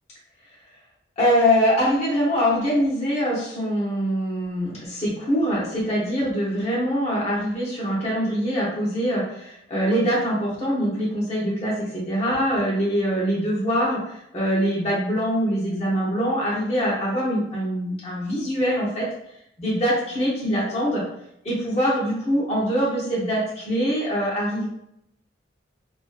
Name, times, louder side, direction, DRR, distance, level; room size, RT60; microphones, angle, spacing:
voice 1, 1.2-19.1 19.6-21.0 21.4-24.7, equal, 35° left, -6 dB, 0.7 m, -23 dB
2.4 x 2.3 x 2.3 m, 0.79 s
head